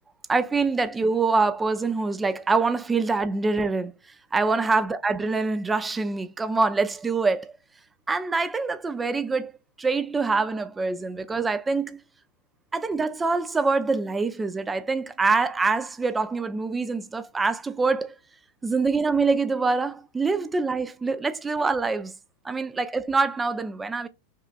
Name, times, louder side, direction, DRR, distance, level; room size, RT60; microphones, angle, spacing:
voice 1, 0.3-3.9 4.3-7.5 8.1-9.5 9.8-12.0 12.7-18.1 18.6-22.1 22.4-24.1, right 4 dB, 15° right, 0.4 m, -25 dB
5.4 x 2.4 x 2.3 m
figure-of-eight pair, 90°, 0 cm